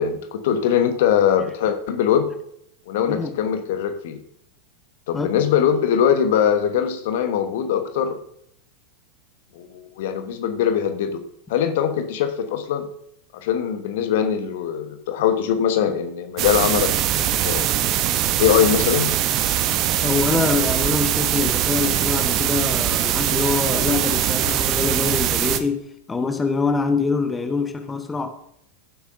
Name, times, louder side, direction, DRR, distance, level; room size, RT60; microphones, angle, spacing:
voice 1, 0.0-2.3 2.9-4.2 5.1-8.2 9.5-11.2 11.5-12.9 13.4-17.7 18.4-19.1, left 8 dB, 55° left, 1.1 m, -21 dB
sound 1, 16.4-25.6, right 11 dB, 35° right, 0.9 m, -22 dB
voice 2, 20.0-28.3, left 4 dB, 15° left, 1.1 m, -24 dB
15.0 x 8.1 x 2.7 m
figure-of-eight pair, 90°, 0 cm